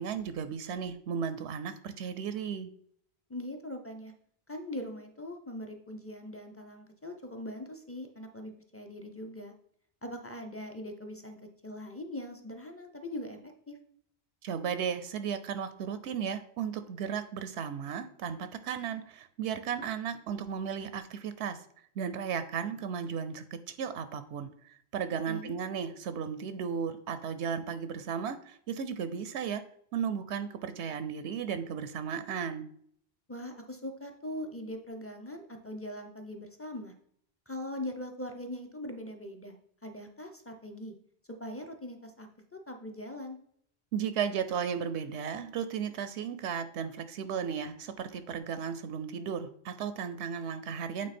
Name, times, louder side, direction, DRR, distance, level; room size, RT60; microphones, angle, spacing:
voice 1, 0.0-2.7 14.4-21.6 22.0-29.6 29.9-32.7 43.9-51.1, right 7 dB, 85° right, 11 dB, 0.9 m, -35 dB
voice 2, 3.3-4.1 4.5-9.5 10.0-13.4 13.7-13.8 25.3-25.6 33.3-36.9 37.5-39.6 39.8-40.9 41.3-43.4, left 1 dB, 15° left, 4 dB, 0.6 m, -41 dB
8.6 x 3.4 x 4.3 m, 0.65 s
omnidirectional pair, 1.1 m